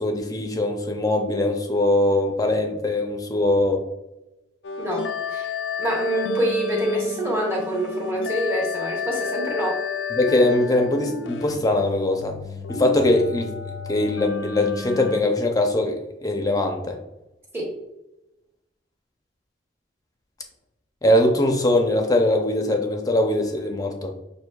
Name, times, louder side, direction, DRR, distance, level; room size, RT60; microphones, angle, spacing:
voice 1, 0.0-3.8 10.1-12.3 12.7-13.5 13.9-17.0 21.0-24.1, left 1 dB, 20° left, 3 dB, 0.6 m, -21 dB
sound 1, 4.6-15.2, left 6 dB, 80° left, 0.4 m, -31 dB
voice 2, 4.8-5.5 5.8-9.8 17.5-17.7, right 1 dB, 15° right, -3 dB, 1.1 m, -26 dB
6.2 x 2.7 x 2.3 m, 0.94 s
head